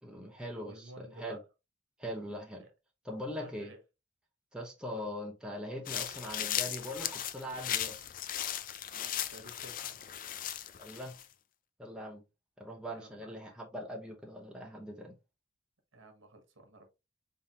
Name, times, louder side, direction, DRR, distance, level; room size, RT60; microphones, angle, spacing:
voice 1, 0.0-1.4 2.0-2.7 3.0-3.7 4.5-8.0 10.8-11.2 11.8-12.2 12.6-15.2, equal, 5° right, 0.9 m, -41 dB
voice 2, 0.6-1.4 2.6-2.7 3.4-3.8 4.9-5.1 8.8-10.3 12.9-13.3 15.9-16.9, right 1 dB, 85° right, 1.2 m, -53 dB
sound 1, 5.9-11.3, left 10 dB, 45° left, 0.3 m, -37 dB
4.0 x 3.6 x 2.8 m
head